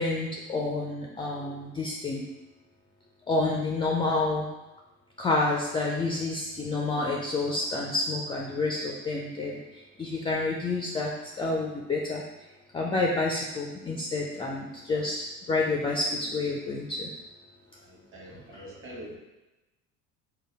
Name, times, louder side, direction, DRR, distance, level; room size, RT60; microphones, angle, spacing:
voice 1, 0.0-2.2 3.3-4.5 5.2-9.6 10.0-11.1 11.4-12.2 12.7-17.1 18.5-18.7, left 3 dB, 15° left, -1 dB, 0.3 m, -29 dB
voice 2, 17.8-19.2, equal, 30° right, -2 dB, 1.1 m, -45 dB
3.8 x 2.0 x 3.9 m, 1.1 s
hypercardioid pair, 70°, 41 cm